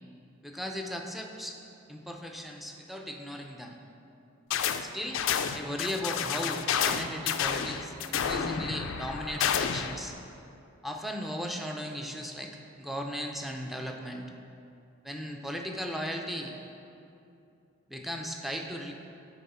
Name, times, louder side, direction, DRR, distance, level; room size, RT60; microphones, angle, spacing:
voice 1, 0.4-1.6 1.9-3.8 4.8-5.2 5.5-10.1 10.8-14.3 15.0-16.5 17.9-18.9, equal, ahead, 2 dB, 0.5 m, -37 dB
sound 1, 4.5-4.8 5.1-10.0, left 8 dB, 65° left, 0.4 m, -30 dB
9.1 x 4.8 x 4.2 m, 2.7 s
head